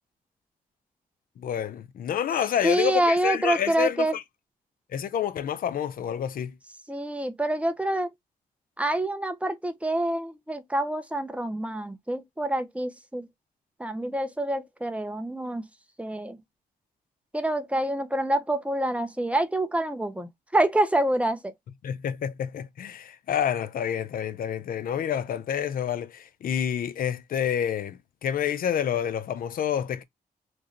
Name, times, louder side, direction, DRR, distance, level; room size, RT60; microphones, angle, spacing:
voice 1, 1.4-4.2 4.9-6.5 21.8-30.0, left 9 dB, 65° left, 0.5 m, -28 dB
voice 2, 2.6-4.2 6.9-8.1 8.8-13.3 13.8-15.7 16.0-16.4 17.3-21.5, right 1 dB, 10° right, 0.7 m, -27 dB
3.2 x 2.4 x 3.8 m
cardioid pair, 75°, 16 cm